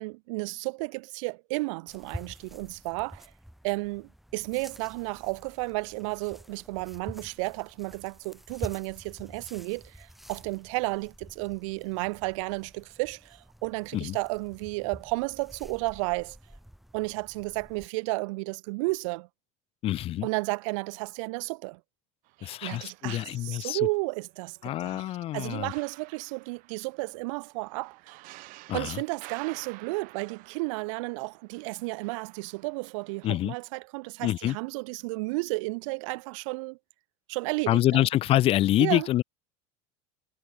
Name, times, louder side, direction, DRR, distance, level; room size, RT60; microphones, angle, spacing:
voice 1, 0.0-3.3 3.6-16.4 16.9-19.3 20.2-21.8 22.4-25.0 25.3-28.2 28.7-36.8 37.3-38.1 38.8-39.1, right 26 dB, 75° right, 0.6 m, -33 dB
sound 1, 1.9-17.9, equal, ahead, 1.2 m, -47 dB
voice 2, 19.8-20.3 22.4-23.8 24.6-25.7 28.7-29.0 33.2-33.5 34.2-34.6 37.7-39.2, left 14 dB, 35° left, 0.6 m, -26 dB
sound 2, 22.3-23.9 24.3-33.7, right 23 dB, 55° right, 6.4 m, -52 dB
supercardioid pair, 140°, 17 cm